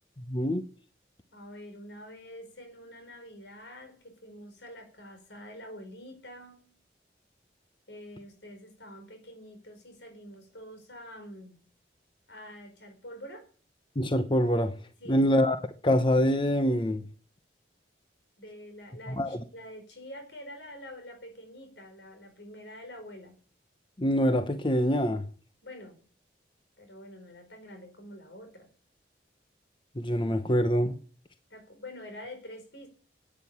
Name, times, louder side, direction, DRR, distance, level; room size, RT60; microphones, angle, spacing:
voice 1, 0.3-0.7 14.0-14.7 15.1-17.0 19.1-19.4 24.0-25.2 30.0-31.0, equal, 25° left, 0.8 m, -25 dB
voice 2, 1.3-6.7 7.9-11.6 12.3-13.5 15.0-15.3 18.4-23.3 25.6-26.0 26.8-28.7 31.5-32.9, equal, 80° left, 4.8 m, -46 dB
11.5 x 9.4 x 8.3 m
head